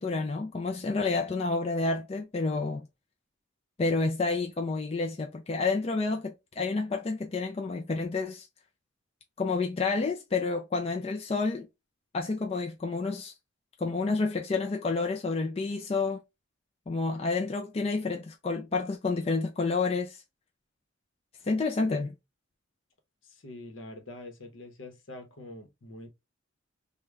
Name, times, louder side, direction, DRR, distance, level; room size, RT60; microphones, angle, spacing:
voice 1, 0.0-2.9 3.8-8.5 9.4-11.7 12.1-13.3 13.8-16.2 16.9-20.2 21.4-22.1, left 3 dB, 30° left, 0.3 m, -29 dB
voice 2, 23.2-26.1, left 2 dB, 70° left, 0.8 m, -45 dB
3.5 x 2.2 x 3.2 m
head